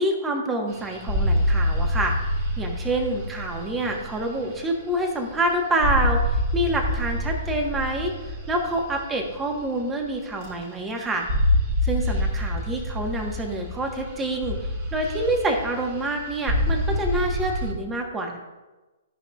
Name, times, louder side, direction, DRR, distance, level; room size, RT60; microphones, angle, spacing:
voice 1, 0.0-2.1 2.6-8.1 8.5-11.3 11.8-18.4, right 1 dB, 15° right, 2 dB, 1.3 m, -27 dB
sound 1, 0.7-5.5 5.8-10.1 10.4-10.9 11.1-17.7, equal, 45° right, 2.6 m, -27 dB
13.5 x 5.5 x 2.5 m, 1.2 s
hypercardioid pair, 125°, 0 cm